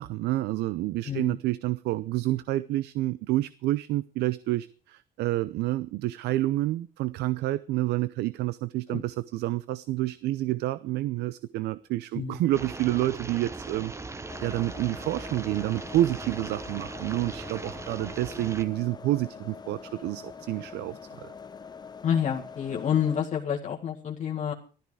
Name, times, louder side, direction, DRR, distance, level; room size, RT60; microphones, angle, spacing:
voice 1, 0.0-13.9 14.4-21.3, right 16 dB, 80° right, 0.6 m, -29 dB
voice 2, 1.0-1.4 8.9-9.0 12.2-12.4 22.0-24.5, left 8 dB, 45° left, 1.9 m, -28 dB
sound 1, 12.5-18.6, right 3 dB, 15° right, 1.0 m, -39 dB
sound 2, 14.3-23.2, left 6 dB, 25° left, 1.0 m, -44 dB
14.5 x 13.0 x 4.9 m
cardioid pair, 110°, 17 cm